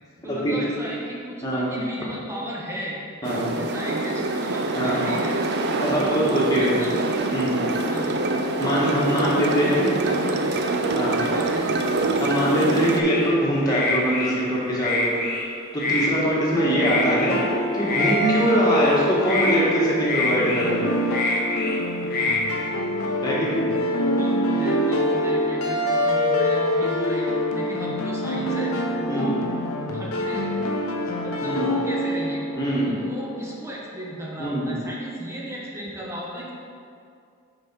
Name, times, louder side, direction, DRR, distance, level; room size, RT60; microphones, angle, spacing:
voice 1, 0.2-3.0 3.6-5.4 5.8-7.1 7.8-8.3 8.8-10.7 11.2-11.8 16.7-16.9 23.3-29.4 29.9-30.7 31.2-32.4 32.8-36.5, equal, 15° right, -3 dB, 0.9 m, -36 dB
voice 2, 3.2-3.5 4.8-5.0 5.8-6.7 7.3-7.6 8.6-9.9 11.0-11.2 12.2-15.2 15.7-20.9 23.2-23.6 29.1-29.3 31.4-31.7 32.6-32.9 34.4-34.7, equal, 20° left, -6 dB, 1.4 m, -23 dB
sound 1, 3.2-13.0, right 2 dB, 50° right, 0.5 m, -25 dB
sound 2, 13.0-13.3 13.7-14.4 14.8-15.5 15.8-16.1 16.7-17.4 17.8-18.2 18.7-19.0 19.2-19.6 20.1-20.7 21.1-21.8 22.1-22.4, left 3 dB, 45° left, 0.8 m, -26 dB
sound 3, 16.6-33.5, equal, 80° left, 0.7 m, -25 dB
6.2 x 5.2 x 4.6 m, 2.3 s
head